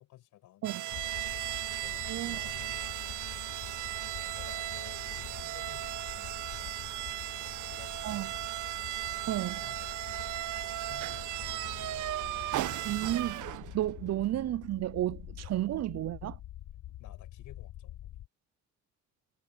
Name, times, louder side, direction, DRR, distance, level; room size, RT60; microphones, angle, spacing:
voice 1, 0.0-3.7 4.0-8.5 9.1-12.0 17.0-18.2, left 14 dB, 90° left, 6.7 m, -56 dB
sound 1, 0.6-13.9, right 15 dB, 85° right, 1.0 m, -36 dB
sound 2, 0.9-18.3, left 13 dB, 65° left, 1.1 m, -46 dB
voice 2, 2.0-2.4 8.0-8.3 9.3-9.6 12.8-13.5 13.7-16.4, right 14 dB, 60° right, 0.5 m, -32 dB
cardioid pair, 90°, 30 cm